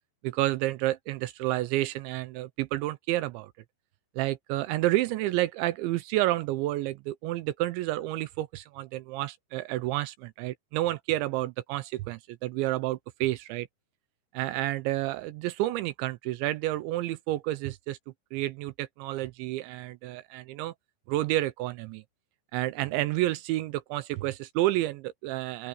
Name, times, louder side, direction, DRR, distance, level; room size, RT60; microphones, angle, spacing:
voice 1, 0.2-3.5 4.2-13.7 14.3-18.0 18.3-20.7 21.1-22.0 22.5-25.7, right 16 dB, 85° right, 2.7 m, -30 dB
open air
omnidirectional pair, 5.9 m